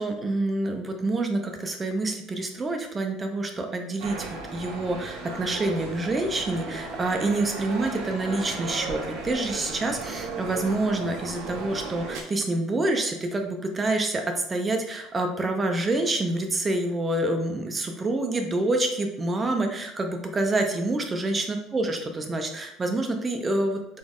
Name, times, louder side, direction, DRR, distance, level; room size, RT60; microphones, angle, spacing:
voice 1, 0.0-14.2 14.5-24.0, right 2 dB, 15° right, 4 dB, 0.6 m, -27 dB
sound 1, 4.0-12.2, right 3 dB, 70° right, 1.0 m, -36 dB
4.3 x 3.5 x 3.5 m, 0.81 s
cardioid pair, 160°, 0 cm